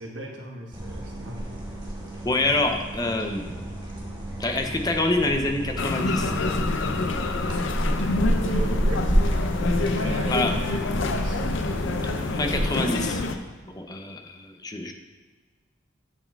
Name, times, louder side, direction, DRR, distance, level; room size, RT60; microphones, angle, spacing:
voice 1, 0.0-1.6 8.3-9.1 9.6-11.5, right 2 dB, 75° right, 1 dB, 1.1 m, -38 dB
sound 1, 0.7-12.6, equal, 25° right, 1.4 m, -29 dB
voice 2, 2.2-3.5 4.4-6.3 10.3-10.5 12.4-13.2 13.7-14.9, left 2 dB, 20° left, 4 dB, 0.6 m, -26 dB
sound 2, 5.8-13.4, left 3 dB, 80° left, 0.6 m, -27 dB
8.8 x 6.9 x 2.3 m, 1.4 s
head